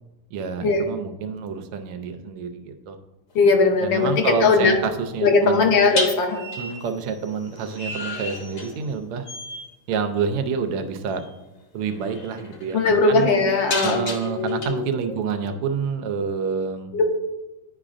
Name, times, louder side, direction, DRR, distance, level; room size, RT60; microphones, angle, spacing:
voice 1, 0.3-3.0 3.8-5.8 6.6-9.3 9.9-11.2 11.7-13.3 13.8-16.9, right 6 dB, 85° right, 8 dB, 1.6 m, -28 dB
voice 2, 3.3-4.7 5.2-6.4 12.7-14.7 16.9-17.0, left 4 dB, 70° left, 3 dB, 1.3 m, -19 dB
sound 1, 3.3-3.6 5.9-9.0 9.2-9.7 11.2-11.3 11.8-14.7, left 2 dB, 50° left, 1.0 m, -33 dB
10.0 x 4.9 x 2.5 m, 1.0 s
omnidirectional pair, 2.4 m